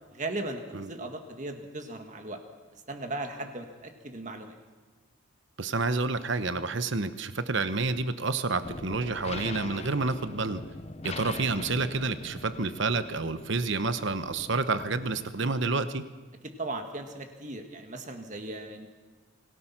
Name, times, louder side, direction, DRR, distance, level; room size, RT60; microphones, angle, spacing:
voice 1, 0.1-2.4 2.9-4.6 16.4-18.9, right 2 dB, 35° right, 5 dB, 1.9 m, -37 dB
voice 2, 5.6-10.6 11.0-16.0, right 3 dB, 60° right, 12 dB, 1.0 m, -29 dB
sound 1, 8.6-15.3, left 3 dB, 30° left, 0.6 m, -42 dB
26.5 x 17.5 x 6.0 m, 1.4 s
head